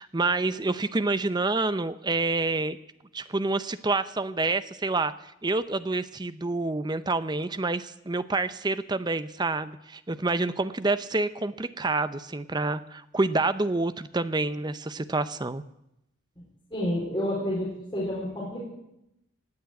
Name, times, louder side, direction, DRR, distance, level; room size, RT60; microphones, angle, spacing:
voice 1, 0.0-2.8 3.1-15.6, right 3 dB, 20° right, 13 dB, 0.6 m, -28 dB
voice 2, 16.7-18.7, left 1 dB, 20° left, -6 dB, 4.8 m, -29 dB
18.0 x 7.3 x 9.2 m, 0.84 s
head